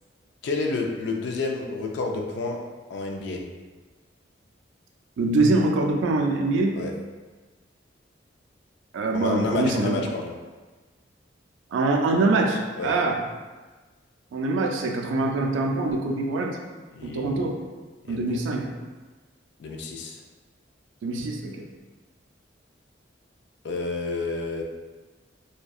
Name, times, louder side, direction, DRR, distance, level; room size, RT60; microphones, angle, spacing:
voice 1, 0.4-2.6 2.9-3.4 6.7-6.9 9.1-10.3 12.8-12.9 16.9-17.6 18.0-18.4 19.6-20.2 23.6-24.6, left 3 dB, 65° left, 1 dB, 0.3 m, -30 dB
voice 2, 5.2-6.8 8.9-10.0 11.7-13.2 14.3-16.6 17.0-17.6 18.1-18.7 21.0-21.6, right 2 dB, 85° right, 2 dB, 0.3 m, -24 dB
2.6 x 2.1 x 2.3 m, 1.3 s
head